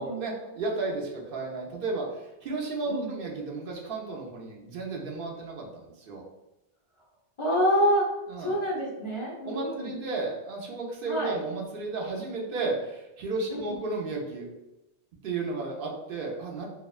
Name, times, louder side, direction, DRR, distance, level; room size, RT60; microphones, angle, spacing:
voice 1, 0.0-6.2 8.3-8.6 9.4-14.5 15.2-16.7, right 3 dB, 60° right, -1 dB, 0.7 m, -33 dB
voice 2, 7.4-8.1 8.4-9.9 11.1-11.4 13.5-13.8, equal, 50° left, -5 dB, 0.4 m, -27 dB
2.8 x 2.1 x 2.3 m, 0.97 s
omnidirectional pair, 1.1 m